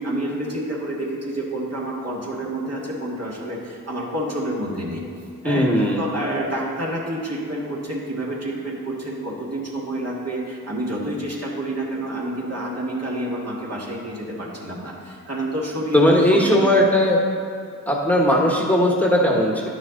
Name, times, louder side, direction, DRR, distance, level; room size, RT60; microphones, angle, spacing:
voice 1, 0.0-5.0 5.4-5.7 6.0-16.7, right 1 dB, 50° right, -4 dB, 2.1 m, -28 dB
voice 2, 5.4-6.0 15.9-17.2 17.9-19.6, left 1 dB, 5° left, -2 dB, 1.4 m, -18 dB
10.0 x 6.2 x 3.9 m, 2.3 s
cardioid pair, 45°, 33 cm